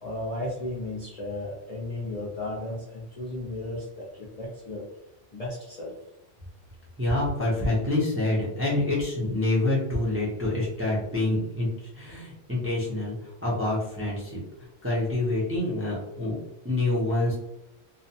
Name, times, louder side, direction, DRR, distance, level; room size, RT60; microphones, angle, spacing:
voice 1, 0.0-4.8 5.3-5.9, left 1 dB, 40° left, -5 dB, 0.6 m, -34 dB
voice 2, 7.0-11.7 11.9-14.4 14.8-16.4 16.6-17.4, left 2 dB, 15° right, -6 dB, 0.5 m, -26 dB
2.5 x 2.2 x 2.7 m, 0.85 s
omnidirectional pair, 1.2 m